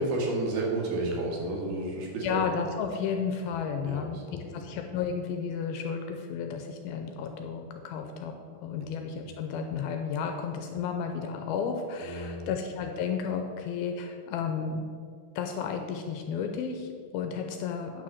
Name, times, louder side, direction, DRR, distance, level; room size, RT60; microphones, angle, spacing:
voice 1, 0.0-2.4 3.8-4.6 9.2-9.3 12.0-12.5, right 2 dB, 75° right, -1 dB, 3.5 m, -32 dB
voice 2, 2.2-8.3 8.6-14.8 15.4-18.0, left 6 dB, 80° left, 4 dB, 2.3 m, -33 dB
9.1 x 4.8 x 7.2 m, 2.2 s
omnidirectional pair, 4.7 m